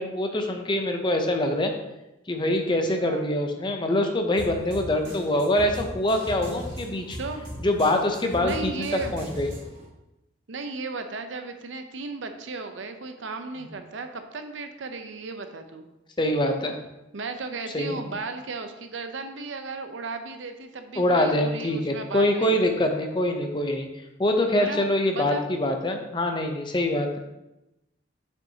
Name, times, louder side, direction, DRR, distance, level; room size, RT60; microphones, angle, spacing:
voice 1, 0.0-1.7 2.3-7.2 7.6-9.5 16.2-16.7 17.7-18.0 21.0-23.9 24.2-27.2, left 1 dB, 25° left, 4 dB, 0.6 m, -24 dB
sound 1, 4.4-9.9, equal, 75° right, 2.2 m, -38 dB
voice 2, 8.4-9.1 10.5-15.9 17.1-22.8 24.5-24.8 25.1-25.5, right 3 dB, 90° right, 7 dB, 0.7 m, -35 dB
6.9 x 5.6 x 2.8 m, 0.94 s
head